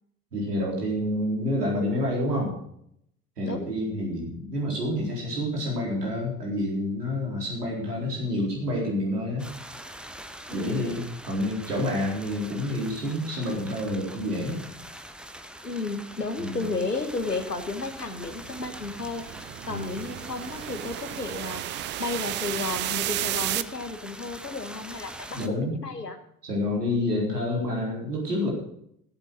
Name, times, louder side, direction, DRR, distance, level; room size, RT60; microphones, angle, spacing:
voice 1, 0.3-2.5 3.4-9.4 10.5-14.6 16.4-16.7 19.7-19.9 25.3-25.8 26.4-28.5, left 1 dB, 75° right, -2 dB, 4.2 m, -28 dB
sound 1, 9.4-25.5, right 1 dB, ahead, 0.9 m, -44 dB
voice 2, 10.5-10.9 15.6-21.6 22.0-26.2, left 3 dB, 85° left, 8 dB, 1.4 m, -33 dB
sound 2, 17.6-23.6, right 15 dB, 25° right, 0.4 m, -33 dB
14.5 x 8.2 x 6.2 m, 0.72 s
figure-of-eight pair, 65°, 47 cm